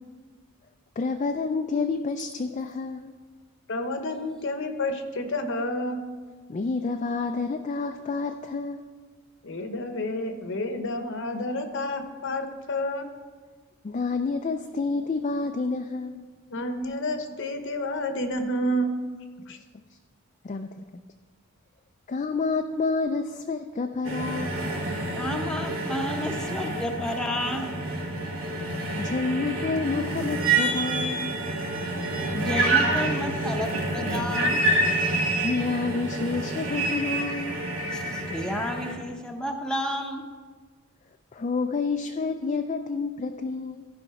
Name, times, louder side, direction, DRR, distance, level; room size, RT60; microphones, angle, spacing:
voice 1, 1.0-3.1 6.5-8.9 13.8-16.3 20.4-21.0 22.1-24.6 29.0-31.3 35.4-37.6 41.3-43.9, left 4 dB, 30° left, 5 dB, 0.3 m, -29 dB
voice 2, 3.7-6.0 9.4-13.1 16.5-18.9 19.5-19.6, left 1 dB, 55° left, 7 dB, 0.9 m, -29 dB
sound 1, 24.0-38.9, right 2 dB, 65° right, 1.6 m, -28 dB
voice 3, 25.1-27.8 32.3-34.7 37.9-40.2, equal, 5° left, 2 dB, 0.7 m, -31 dB
14.5 x 5.2 x 4.7 m, 1.5 s
head